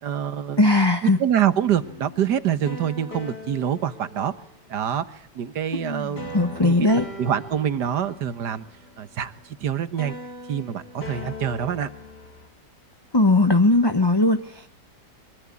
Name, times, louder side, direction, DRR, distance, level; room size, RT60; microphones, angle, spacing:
voice 1, 0.0-0.6 1.2-4.3 4.7-6.7 7.2-8.7 9.0-10.2 10.5-11.9, right 9 dB, 65° right, 13 dB, 1.9 m, -26 dB
voice 2, 0.6-1.2 5.7-7.1 13.1-14.7, left 2 dB, 15° left, 7 dB, 1.1 m, -19 dB
sound 1, 1.7-4.8 6.2-9.7 10.0-12.5, left 1 dB, 65° left, 4.4 m, -40 dB
24.5 x 22.5 x 8.5 m, 0.72 s
omnidirectional pair, 1.9 m